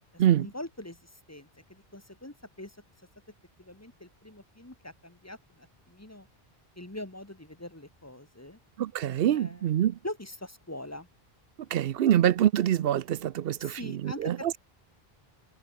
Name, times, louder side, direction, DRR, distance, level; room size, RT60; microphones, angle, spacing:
voice 1, 0.1-2.8 3.6-6.3 6.8-8.6 9.3-9.7 10.0-11.1 13.6-14.6, left 1 dB, 15° left, 1.9 m, -43 dB
voice 2, 8.8-10.0 11.7-14.5, right 11 dB, 70° right, 0.8 m, -25 dB
omnidirectional pair, 1.0 m